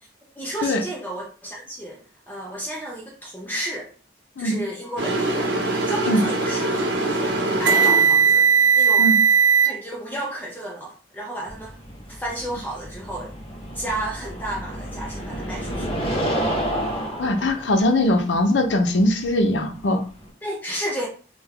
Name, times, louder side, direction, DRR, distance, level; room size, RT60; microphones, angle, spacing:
voice 1, 0.4-2.0 2.3-3.9 4.4-5.5 5.9-9.1 9.6-11.7 12.1-13.3 13.7-15.9 20.4-21.1, right 1 dB, 10° left, -2 dB, 0.5 m, -32 dB
sound 1, 5.0-9.7, right 5 dB, 80° right, 0.9 m, -19 dB
sound 2, 11.5-20.3, equal, 30° left, 0.9 m, -30 dB
voice 2, 17.2-20.0, left 1 dB, 85° left, 6 dB, 0.6 m, -21 dB
3.3 x 2.2 x 3.4 m, 0.40 s
head